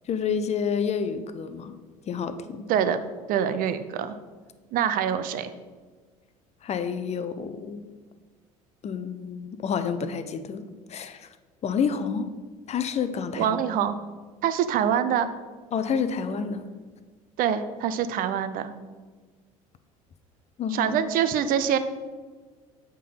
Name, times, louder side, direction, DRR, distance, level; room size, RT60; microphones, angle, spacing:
voice 1, 0.1-1.8 2.1-2.6 6.6-7.9 8.8-11.3 11.6-12.3 12.7-13.6 15.7-16.6 20.6-21.0, left 6 dB, 35° left, 10 dB, 0.7 m, -29 dB
voice 2, 2.7-3.0 3.3-4.2 4.7-5.5 13.4-14.0 14.4-15.3 17.4-18.7 20.7-21.8, right 9 dB, 50° right, 11 dB, 0.6 m, -25 dB
8.3 x 3.8 x 5.8 m, 1.4 s
hypercardioid pair, 65°, 18 cm